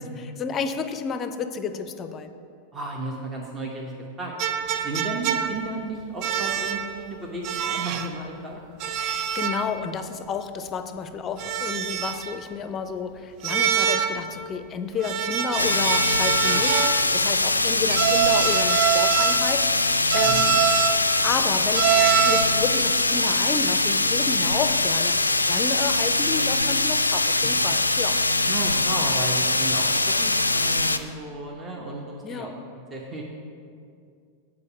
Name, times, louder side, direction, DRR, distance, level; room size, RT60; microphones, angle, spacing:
voice 1, 0.0-2.3 9.0-20.6 21.2-28.2 32.2-32.5, left 5 dB, 25° left, 10 dB, 0.5 m, -31 dB
voice 2, 2.7-4.3 4.8-8.6 16.5-16.6 20.2-20.5 28.5-32.5 32.9-33.2, right 2 dB, 20° right, -1 dB, 0.9 m, -34 dB
sound 1, 4.4-5.7 6.2-6.9 7.4-8.1 8.8-9.7 10.0-10.1 11.4-12.4 13.4-14.3 15.0-17.1 17.9-19.6 20.1-21.0 21.7-22.6, right 9 dB, 40° right, 0.5 m, -24 dB
sound 2, 15.6-31.0, left 2 dB, 80° left, 0.3 m, -22 dB
8.3 x 4.9 x 6.9 m, 2.4 s
figure-of-eight pair, 90°, 0 cm